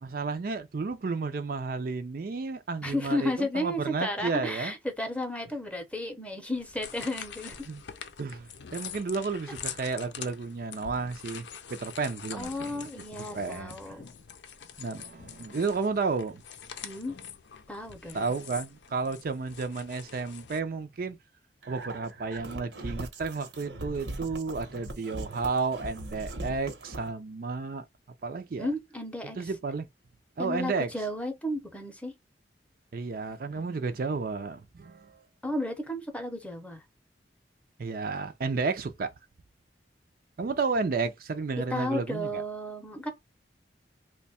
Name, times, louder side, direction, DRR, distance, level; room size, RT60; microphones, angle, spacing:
voice 1, 0.0-4.7 7.7-7.8 8.2-12.9 13.3-13.9 14.8-16.4 18.1-21.2 21.7-27.8 28.2-28.7 29.4-29.9 30.4-30.9 32.9-35.2 37.8-39.1 40.4-42.4, right 4 dB, 50° right, 0.4 m, -32 dB
voice 2, 2.8-7.7 12.3-14.1 16.8-17.1 17.7-18.3 28.6-29.5 30.4-32.1 35.4-36.8 41.7-43.1, left 1 dB, 5° left, 0.7 m, -33 dB
sound 1, 6.5-20.6, left 8 dB, 85° left, 0.6 m, -45 dB
sound 2, 21.6-27.1, right 1 dB, 80° right, 0.9 m, -40 dB
3.1 x 2.2 x 4.1 m
head